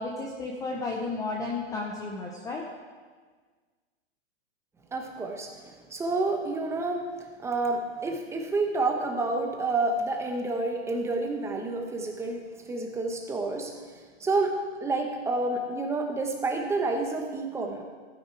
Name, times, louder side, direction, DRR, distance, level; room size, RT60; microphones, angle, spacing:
voice 1, 0.0-2.6, left 3 dB, 10° left, -1 dB, 0.7 m, -33 dB
voice 2, 4.9-5.5 5.9-7.1 7.4-12.4 12.7-13.7 14.2-14.5 14.8-17.8, right 3 dB, 10° right, 2 dB, 0.9 m, -29 dB
14.5 x 9.5 x 4.5 m, 1.5 s
hypercardioid pair, 155°, 34 cm